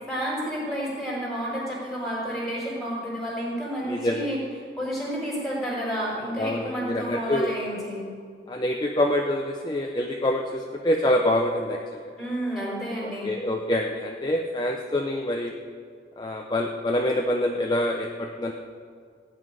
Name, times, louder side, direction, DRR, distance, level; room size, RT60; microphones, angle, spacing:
voice 1, 0.0-4.4 4.8-8.1 12.2-13.4, equal, ahead, -5 dB, 4.7 m, -30 dB
voice 2, 3.9-4.3 6.4-7.5 8.5-11.8 13.2-15.5 16.2-18.5, left 1 dB, 25° left, 2 dB, 0.7 m, -26 dB
17.0 x 6.0 x 9.8 m, 2.2 s
head